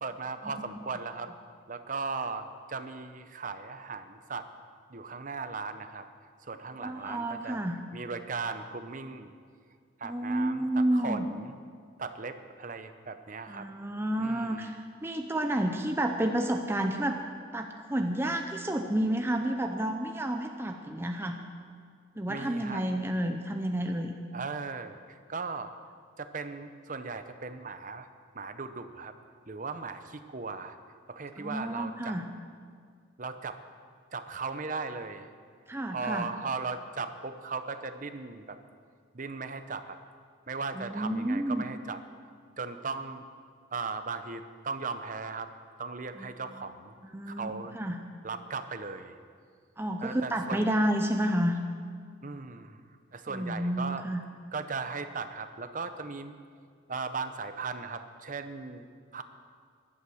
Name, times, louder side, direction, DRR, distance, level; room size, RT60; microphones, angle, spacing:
voice 1, 0.0-1.3 1.7-4.5 4.9-6.1 6.4-7.6 7.9-9.3 10.0-11.5 12.0-13.7 14.2-14.7 22.3-22.8 24.3-25.8 26.2-28.1 28.3-29.1 29.5-30.8 31.1-32.2 33.2-33.6 34.1-35.3 35.9-38.6 39.1-40.0 40.5-42.0 42.6-43.2 43.7-45.5 45.8-46.9 47.3-47.7 48.2-49.2 50.0-50.7 52.2-52.8 53.1-54.0 54.5-56.4 56.9-59.2, right 4 dB, 40° right, 9 dB, 0.8 m, -37 dB
voice 2, 6.8-7.8 10.0-11.3 13.5-17.2 17.5-21.4 22.2-24.1 31.4-32.3 35.7-36.3 40.8-41.6 46.2-46.6 47.1-48.0 49.8-51.6 53.3-54.2, right 1 dB, 10° right, 4 dB, 0.6 m, -30 dB
15.5 x 11.5 x 6.4 m, 2.1 s
head